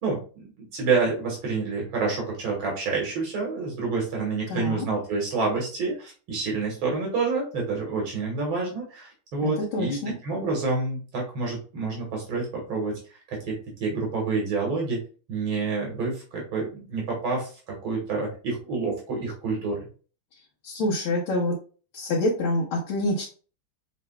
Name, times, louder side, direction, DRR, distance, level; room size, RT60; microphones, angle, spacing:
voice 1, 0.0-10.0 10.2-13.0 13.3-15.0 15.3-19.9, right 4 dB, 80° right, -1 dB, 2.3 m, -28 dB
voice 2, 4.5-4.9 9.4-10.1 20.6-21.6 21.9-23.3, left 1 dB, 75° left, -4 dB, 1.9 m, -26 dB
6.8 x 3.2 x 2.2 m, 0.37 s
omnidirectional pair, 2.2 m